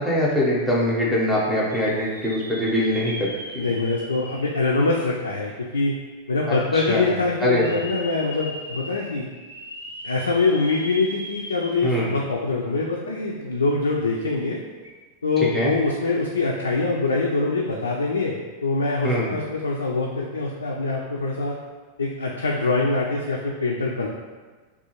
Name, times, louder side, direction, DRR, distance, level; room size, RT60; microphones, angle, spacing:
voice 1, 0.0-3.3 3.5-3.7 6.5-7.8 11.8-12.1 15.5-15.7 19.0-19.3, left 1 dB, 5° left, -6 dB, 0.6 m, -23 dB
sound 1, 1.7-5.7 6.2-6.3 7.4-12.3 12.7-12.8 14.7-14.9, equal, 80° right, 0.5 m, -39 dB
voice 2, 3.6-5.9 6.3-9.3 10.0-14.6 15.2-21.6 22.0-24.1, left 3 dB, 75° left, -2 dB, 0.3 m, -24 dB
3.5 x 2.4 x 2.8 m, 1.4 s
figure-of-eight pair, 90°, 0 cm